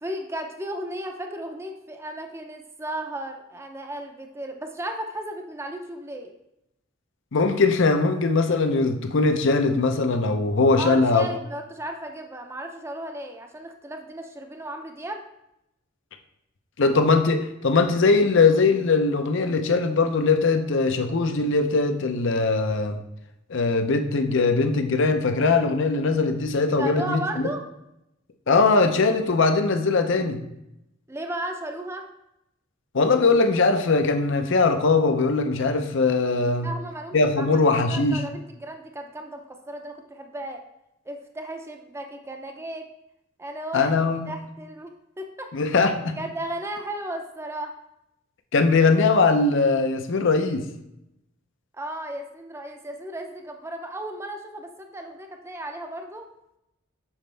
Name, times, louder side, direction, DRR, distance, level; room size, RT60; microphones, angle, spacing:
voice 1, 0.0-6.3 10.8-15.2 26.8-27.6 31.1-32.1 36.6-37.5 37.9-40.6 41.1-42.9 43.4-43.9 44.3-45.6 46.2-47.8 51.7-56.3, right 1 dB, 15° right, 4 dB, 0.6 m, -35 dB
voice 2, 7.3-11.3 16.8-23.0 23.5-27.2 28.5-30.4 32.9-36.7 37.1-38.2 43.7-44.3 45.5-46.2 48.5-50.6, left 3 dB, 65° left, 7 dB, 0.7 m, -21 dB
7.2 x 5.1 x 3.3 m, 0.85 s
head